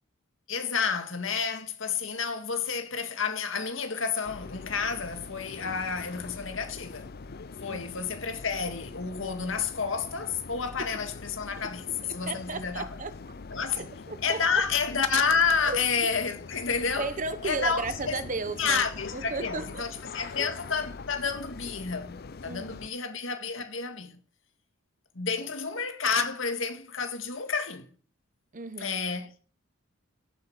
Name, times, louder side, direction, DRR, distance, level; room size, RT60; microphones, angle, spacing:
voice 1, 0.5-7.1 7.6-11.9 12.1-12.9 13.5-13.9 14.2-17.1 17.4-18.2 18.6-24.2 25.2-27.9 28.8-29.3, left 5 dB, 65° left, 2.0 m, -30 dB
sound 1, 4.2-22.9, left 4 dB, 45° left, 0.5 m, -43 dB
voice 2, 12.0-13.2 13.8-14.6 15.5-15.8 17.0-18.9 19.1-19.9 20.2-20.5 22.4-22.8 28.5-29.0, right 3 dB, 40° right, 0.9 m, -35 dB
15.5 x 8.0 x 6.5 m
head